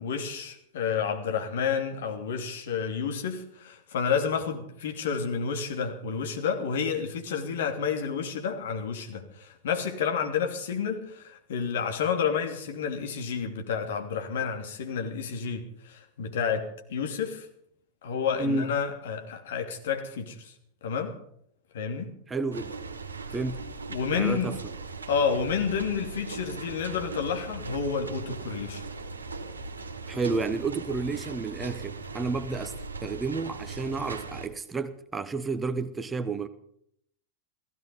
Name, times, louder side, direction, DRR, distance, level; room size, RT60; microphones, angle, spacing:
voice 1, 0.0-17.5 18.0-20.5 20.8-21.1 21.7-22.1 23.9-24.5 25.1-28.8, left 6 dB, 60° left, 3.0 m, -30 dB
voice 2, 18.4-18.7 22.3-22.8 23.3-23.7 24.1-24.6 30.0-36.5, right 3 dB, 15° right, 1.1 m, -31 dB
sound 1, 22.5-34.5, right 3 dB, 75° right, 2.1 m, -39 dB
16.5 x 16.0 x 5.5 m
figure-of-eight pair, 90°, 0 cm